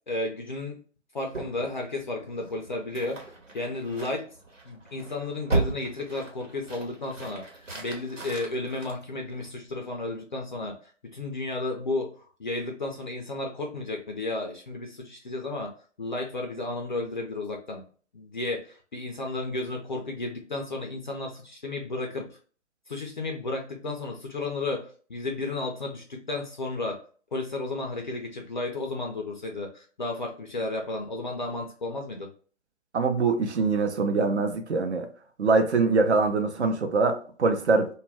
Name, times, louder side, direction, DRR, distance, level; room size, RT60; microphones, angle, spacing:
voice 1, 0.1-0.8 1.1-3.2 3.5-4.3 4.6-10.8 11.1-15.7 16.0-17.8 18.1-22.4 22.9-27.0 27.3-32.3, left 2 dB, 40° left, 2 dB, 0.4 m, -33 dB
sound 1, 1.3-9.8, right 3 dB, 85° right, 1.1 m, -36 dB
voice 2, 32.9-35.1 35.4-37.9, right 4 dB, 60° right, 6 dB, 0.6 m, -23 dB
2.3 x 2.1 x 3.3 m, 0.41 s
figure-of-eight pair, 135°, 37 cm